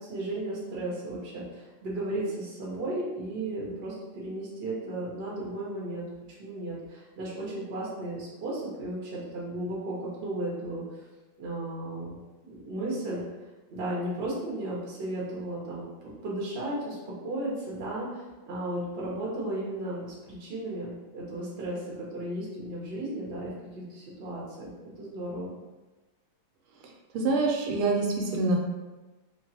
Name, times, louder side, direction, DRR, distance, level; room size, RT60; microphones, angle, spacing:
voice 1, 0.0-6.1 6.4-10.8 11.4-13.2 13.7-15.8 16.2-24.7 25.0-25.5, right 1 dB, 65° right, -5 dB, 0.6 m, -35 dB
voice 2, 27.1-28.6, right 3 dB, 90° right, 1 dB, 1.4 m, -25 dB
3.4 x 2.0 x 2.7 m, 1.2 s
omnidirectional pair, 2.2 m